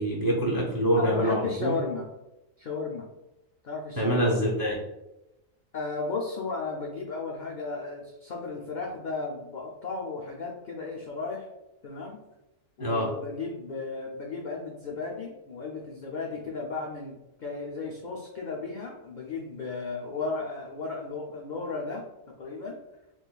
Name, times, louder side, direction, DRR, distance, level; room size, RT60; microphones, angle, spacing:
voice 1, 0.0-1.8 4.0-4.8 12.8-13.1, equal, 30° right, -3 dB, 0.3 m, -25 dB
voice 2, 1.0-2.1 2.6-3.1 3.6-4.3 5.7-11.5 11.8-12.2 12.8-22.0 22.4-22.8, left 4 dB, 70° left, -2 dB, 0.4 m, -34 dB
3.9 x 3.0 x 2.3 m, 0.94 s
omnidirectional pair, 1.4 m